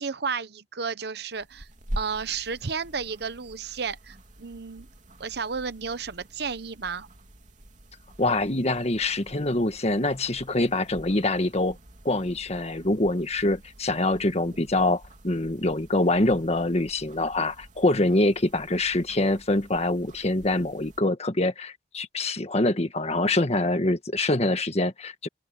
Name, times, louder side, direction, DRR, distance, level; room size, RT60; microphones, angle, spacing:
voice 1, 0.0-1.7 2.0-4.9 5.2-7.1, right 5 dB, 65° right, 0.9 m, -32 dB
sound 1, 1.3-21.0, equal, 45° right, 3.1 m, -45 dB
voice 2, 8.2-11.8 12.0-25.3, left 2 dB, 40° left, 1.6 m, -25 dB
open air
head